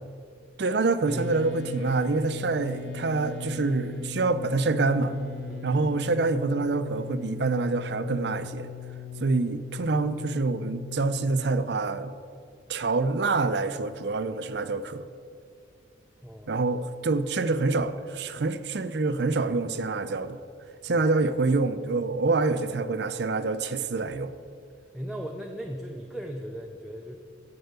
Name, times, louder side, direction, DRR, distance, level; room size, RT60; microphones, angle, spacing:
voice 1, 0.6-5.1 5.6-8.7 9.2-12.1 12.7-15.1 16.5-20.4 20.8-24.3, right 3 dB, 60° right, 12 dB, 0.5 m, -26 dB
sound 1, 1.1-11.3, left 5 dB, 65° left, 1.0 m, -38 dB
voice 2, 5.5-5.8 16.2-16.5 20.9-21.0 24.9-27.2, equal, ahead, 1 dB, 0.5 m, -37 dB
7.9 x 7.7 x 6.8 m, 2.3 s
head